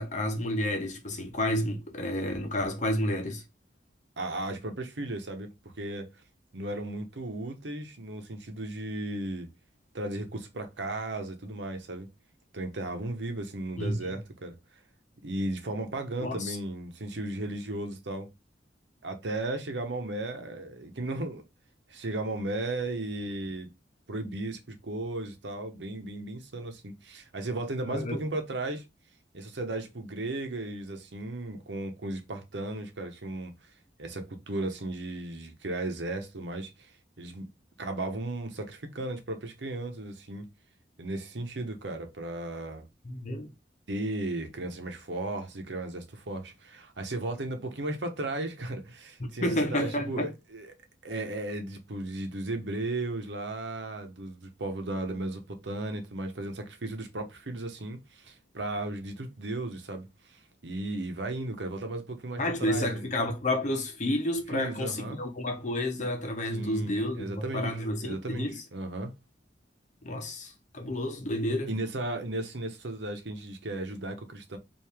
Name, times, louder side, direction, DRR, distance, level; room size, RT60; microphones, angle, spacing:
voice 1, 0.0-3.4 13.8-14.2 16.2-16.6 27.9-28.2 43.0-43.5 49.2-50.3 62.4-68.6 70.0-71.7, left 1 dB, 45° left, 1.0 m, -30 dB
voice 2, 4.2-6.1 6.5-9.5 9.9-12.1 12.5-14.6 15.2-18.3 19.0-21.4 21.9-23.7 24.1-28.8 29.3-33.5 34.0-36.9 37.2-37.5 37.8-40.4 41.0-42.8 43.9-50.7 51.0-60.4 60.6-63.1 64.5-65.2 66.5-69.1 71.7-74.6, right 2 dB, 75° right, 0.9 m, -35 dB
4.7 x 2.7 x 3.4 m
head